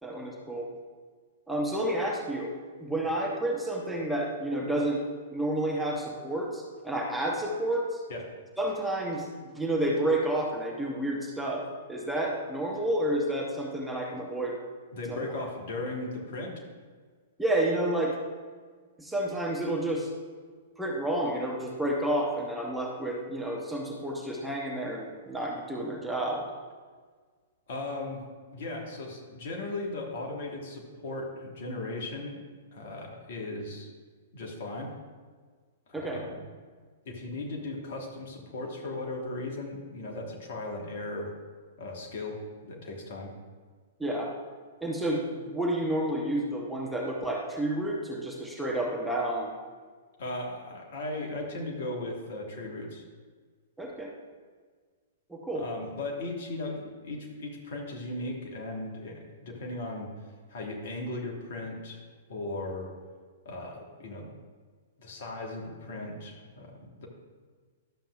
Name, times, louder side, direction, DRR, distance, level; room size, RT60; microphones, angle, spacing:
voice 1, 0.0-0.7 1.5-5.0 5.3-8.0 8.6-9.3 9.5-14.6 15.1-15.3 17.4-18.2 19.0-20.1 20.8-26.5 35.9-36.2 44.0-44.3 44.8-49.5 53.8-54.1 55.3-55.7, right 1 dB, 5° right, -2 dB, 1.1 m, -30 dB
voice 2, 14.9-16.6 27.7-28.2 28.5-32.4 32.7-33.9 34.3-34.9 35.9-36.4 37.0-41.3 41.8-43.3 50.2-53.0 55.5-60.1 60.5-62.0 62.3-62.9 63.4-64.3 65.0-67.1, left 2 dB, 50° left, 0 dB, 1.6 m, -37 dB
12.0 x 7.3 x 2.5 m, 1.5 s
figure-of-eight pair, 105°, 0 cm